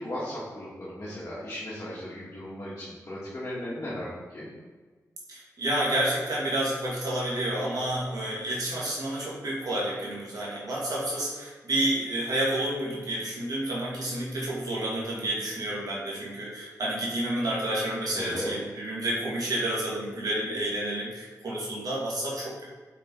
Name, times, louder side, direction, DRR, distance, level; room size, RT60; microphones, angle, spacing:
voice 1, 0.0-4.5 18.1-18.5, left 1 dB, 45° left, -9 dB, 1.9 m, -36 dB
voice 2, 5.3-22.6, right 1 dB, 70° right, -6 dB, 1.9 m, -30 dB
5.4 x 5.4 x 4.0 m, 1.4 s
wide cardioid pair, 75°, 7 cm